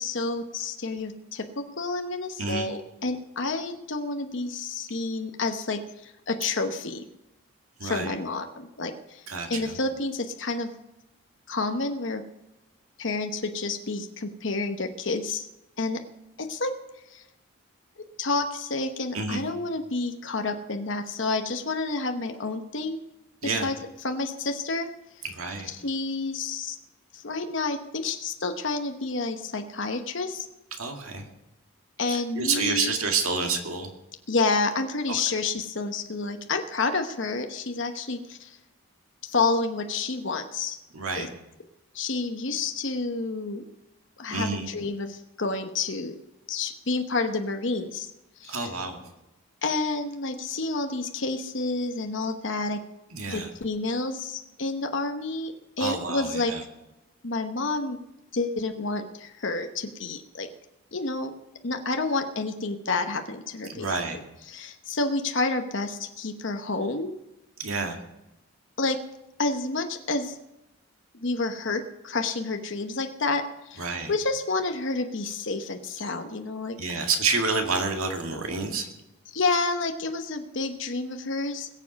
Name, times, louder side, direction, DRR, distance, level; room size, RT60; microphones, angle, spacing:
voice 1, 0.0-7.0 7.8-9.2 9.5-10.7 11.5-12.2 13.0-15.5 15.8-16.0 16.4-16.7 17.1-17.2 18.2-23.0 23.4-23.8 24.0-24.9 25.7-26.8 27.1-30.5 32.0-32.9 34.3-38.6 39.2-40.8 41.1-41.3 41.9-43.6 44.2-46.1 46.5-48.1 48.4-48.7 49.6-52.8 53.3-56.5 57.2-58.0 58.3-60.5 60.9-61.3 61.6-63.9 64.5-67.2 68.8-69.0 69.4-70.4 71.1-76.8 79.3-81.7, left 3 dB, 60° left, 6 dB, 1.0 m, -29 dB
voice 2, 2.4-2.7 7.8-8.2 9.3-9.8 19.1-19.4 23.4-23.7 25.3-25.7 30.8-31.3 32.1-33.9 35.1-35.2 40.9-41.3 44.3-44.7 48.5-49.0 53.1-53.5 55.8-56.6 63.7-64.2 67.6-68.0 73.8-74.1 76.8-78.9, right 4 dB, 80° right, 3 dB, 2.2 m, -29 dB
21.5 x 7.3 x 5.3 m, 0.94 s
head